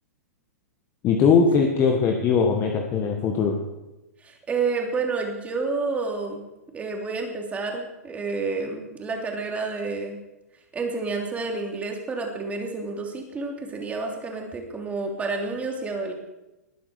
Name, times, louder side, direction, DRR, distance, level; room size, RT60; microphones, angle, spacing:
voice 1, 1.0-3.6, left 5 dB, 30° left, 3 dB, 1.7 m, -20 dB
voice 2, 4.2-6.4 6.7-10.2 10.7-16.1, right 4 dB, 15° right, 1 dB, 3.1 m, -29 dB
20.0 x 9.3 x 5.0 m, 1.0 s
figure-of-eight pair, 110°, 9 cm